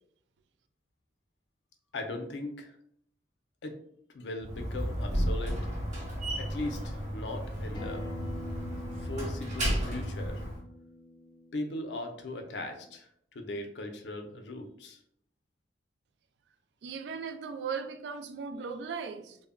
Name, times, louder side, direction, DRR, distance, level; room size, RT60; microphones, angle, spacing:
voice 1, 1.9-2.8 3.6-3.8 4.1-5.6 6.4-8.0 8.9-10.4 11.5-15.0, left 2 dB, 80° left, 0.5 m, -39 dB
Slam, 4.4-10.6, equal, 45° right, 0.9 m, -33 dB
Acoustic guitar, 7.7-12.9, left 2 dB, 25° left, 0.5 m, -46 dB
voice 2, 16.8-19.4, right 5 dB, 75° right, 0.3 m, -37 dB
2.1 x 2.1 x 3.5 m
head